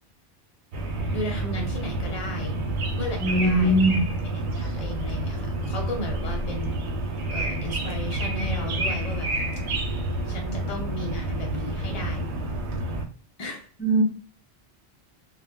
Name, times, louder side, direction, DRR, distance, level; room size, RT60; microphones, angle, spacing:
sound 1, 0.7-13.0, right 1 dB, 85° right, 0.9 m, -29 dB
voice 1, 1.1-2.6 2.9-3.8 4.6-6.8 7.3-9.3 10.3-12.3 13.4-13.7, left 1 dB, 40° left, 1 dB, 0.8 m, -35 dB
voice 2, 3.2-4.0 13.8-14.0, right 1 dB, 15° left, -1 dB, 0.4 m, -20 dB
2.1 x 2.1 x 3.5 m, 0.39 s
omnidirectional pair, 1.1 m